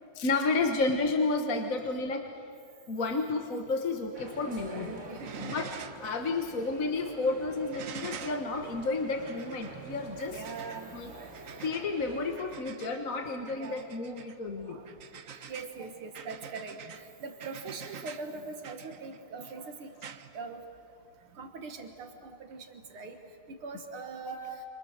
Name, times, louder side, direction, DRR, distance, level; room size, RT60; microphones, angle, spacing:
voice 1, 0.1-2.2 2.9-4.9 5.4-5.7 6.0-10.4 10.9-11.1 11.6-14.8 24.2-24.6, left 3 dB, 45° left, 4 dB, 1.7 m, -31 dB
sound 1, 4.1-12.4, right 2 dB, 35° right, 2.6 m, -47 dB
sound 2, 4.7-4.9 5.2-6.1 6.4-6.5 7.7-21.1 22.5-22.6, right 7 dB, 50° right, 1.1 m, -47 dB
voice 2, 4.7-5.5 9.7-10.0 10.3-10.9 13.6-13.8 14.7-14.9 15.5-19.9 20.3-20.6 21.4-23.2 23.6-24.4, right 4 dB, 80° right, 6 dB, 2.4 m, -42 dB
29.0 x 27.0 x 6.6 m, 2.3 s
omnidirectional pair, 2.3 m